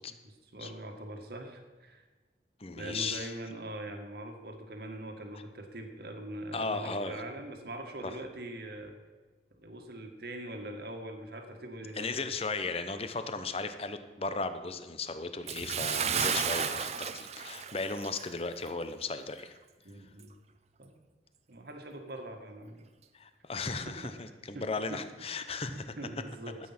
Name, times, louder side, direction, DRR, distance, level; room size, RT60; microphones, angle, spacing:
voice 1, 0.1-2.0 2.8-9.0 9.5-12.1 19.9-20.3 20.8-21.0 21.5-22.8 23.9-24.1 24.5-25.0 25.6-26.6, right 1 dB, 60° right, 4 dB, 1.7 m, -42 dB
voice 2, 2.6-3.3 6.5-7.2 8.0-8.2 11.9-19.6 23.1-25.9, left 3 dB, 35° left, 10 dB, 0.8 m, -36 dB
Bathtub (filling or washing) / Splash splatter, 15.5-18.3 18.7-18.8 19.4-19.5, right 7 dB, 40° right, 0.7 m, -33 dB
13.0 x 8.8 x 5.9 m, 1.3 s
head